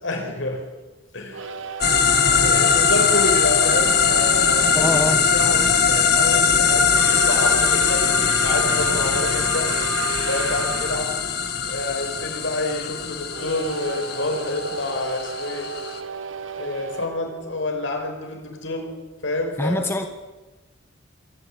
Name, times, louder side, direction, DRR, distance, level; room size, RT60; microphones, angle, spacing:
voice 1, 0.0-0.6 1.1-1.5 2.3-9.7 10.2-11.2 11.7-15.7 16.6-18.9 19.2-19.8, left 2 dB, 75° left, 3 dB, 5.3 m, -28 dB
sound 1, 1.3-5.2 6.8-11.0 13.3-18.2, right 5 dB, 80° right, 1.5 m, -33 dB
sound 2, 1.8-16.0, left 6 dB, 50° left, 1.8 m, -21 dB
voice 2, 4.7-5.2 19.6-20.1, left 1 dB, 10° left, 5 dB, 1.2 m, -23 dB
24.0 x 14.0 x 8.8 m, 1.2 s
head